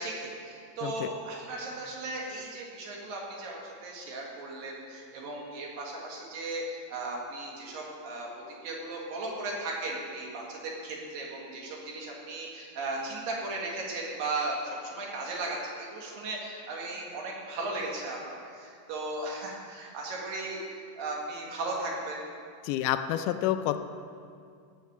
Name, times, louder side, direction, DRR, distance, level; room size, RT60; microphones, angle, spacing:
voice 1, 0.0-8.3 8.6-22.2, right 2 dB, 90° right, -2 dB, 3.7 m, -36 dB
voice 2, 22.6-23.8, left 12 dB, 80° left, 8 dB, 2.0 m, -28 dB
16.5 x 6.4 x 6.9 m, 2.3 s
omnidirectional pair, 3.9 m